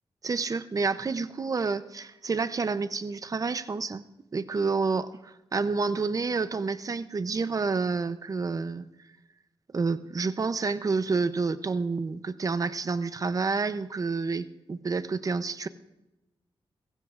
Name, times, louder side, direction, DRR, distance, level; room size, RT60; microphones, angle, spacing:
voice 1, 0.2-4.0 4.3-8.9 9.7-15.7, right 4 dB, 35° right, 13 dB, 0.6 m, -29 dB
28.5 x 15.5 x 2.5 m, 0.99 s
wide cardioid pair, 105°, 10 cm